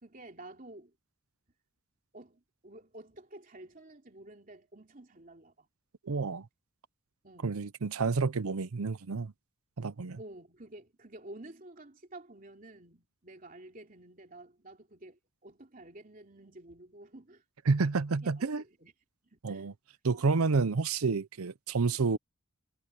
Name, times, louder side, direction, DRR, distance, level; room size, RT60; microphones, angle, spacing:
voice 1, 0.0-1.0 2.1-5.7 7.2-7.6 10.2-17.4 18.2-18.9 19.2-19.7 20.1-20.2, right 2 dB, 40° right, 3.0 m, -51 dB
voice 2, 6.1-6.5 7.4-9.3 9.8-10.2 17.7-18.6 19.4-19.7 20.0-22.2, right 4 dB, 90° right, 0.7 m, -29 dB
head